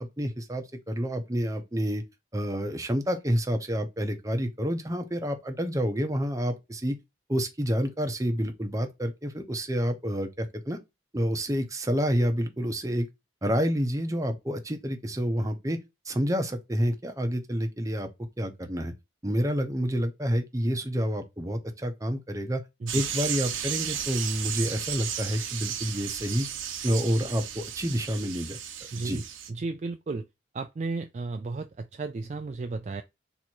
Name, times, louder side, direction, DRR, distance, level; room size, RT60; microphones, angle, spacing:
voice 1, 0.0-2.0 2.3-7.0 7.3-10.8 11.1-13.1 13.4-15.8 16.1-18.1 18.4-18.9 19.2-22.6 22.9-26.5 26.8-28.6 29.0-29.2, equal, 15° right, 0.7 m, -28 dB
sound 1, 22.9-29.5, right 9 dB, 90° right, 0.8 m, -34 dB
voice 2, 28.9-29.2 29.5-30.3 30.5-33.0, right 3 dB, 35° right, 0.3 m, -33 dB
3.5 x 3.1 x 4.3 m
head